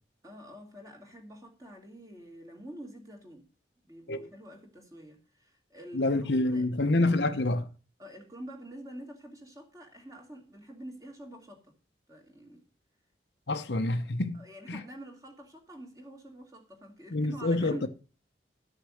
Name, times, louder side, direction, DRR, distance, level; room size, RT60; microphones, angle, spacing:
voice 1, 0.2-3.4 3.8-6.7 8.0-11.7 12.1-12.6 14.3-17.9, right 1 dB, 20° right, 2.7 m, -47 dB
voice 2, 5.9-7.7 13.5-14.4 14.7-14.8 17.1-17.9, left 2 dB, 75° left, 1.0 m, -27 dB
12.5 x 6.5 x 6.4 m
head